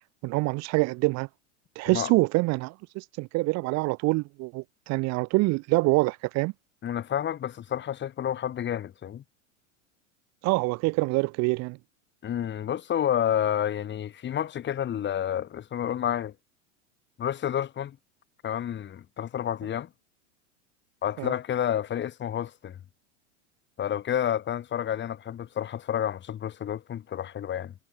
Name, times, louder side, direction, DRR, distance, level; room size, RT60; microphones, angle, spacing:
voice 1, 0.2-1.3 1.8-6.5 10.4-11.8 21.2-21.3, right 24 dB, 45° right, 1.0 m, -25 dB
voice 2, 6.8-9.2 12.2-16.3 17.2-18.0 18.4-19.9 21.0-22.8 23.8-27.7, left 10 dB, 30° left, 2.9 m, -30 dB
hypercardioid pair, 100°, 37 cm